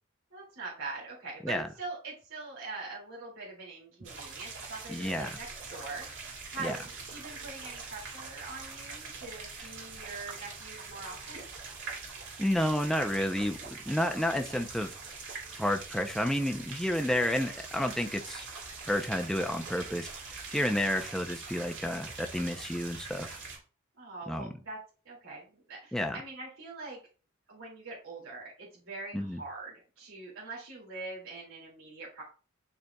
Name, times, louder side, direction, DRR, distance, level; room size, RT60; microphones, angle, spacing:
voice 1, 0.3-11.5 20.5-20.6 24.0-27.0 27.5-32.2, right 3 dB, 80° right, 2.4 m, -43 dB
sound 1, 4.0-23.6, right 4 dB, 65° right, 2.4 m, -43 dB
voice 2, 4.9-5.3 6.6-6.7 12.4-15.0 15.5-18.5 18.9-20.1 20.5-23.4 24.3-24.5 25.9-26.2 29.1-29.4, left 1 dB, ahead, 0.5 m, -30 dB
11.5 x 4.0 x 2.3 m
head